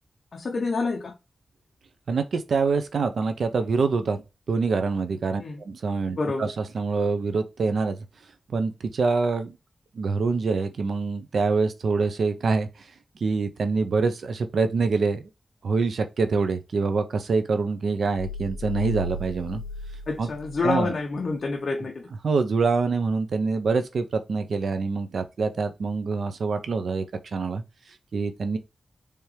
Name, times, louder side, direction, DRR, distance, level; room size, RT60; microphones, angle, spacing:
voice 1, 0.3-1.1 5.4-5.6 6.2-6.5 20.1-22.1, left 4 dB, 50° left, 0.8 m, -28 dB
voice 2, 2.1-4.2 4.5-6.5 6.7-8.0 8.5-9.6 9.9-12.7 13.2-15.2 15.6-19.6 20.2-20.3 20.6-20.9 22.2-27.0 27.3-27.6 28.1-28.6, right 4 dB, 75° right, 0.7 m, -25 dB
sound 1, 18.2-20.9, left 3 dB, 80° left, 0.4 m, -35 dB
4.4 x 3.4 x 3.2 m
wide cardioid pair, 165°, 0 cm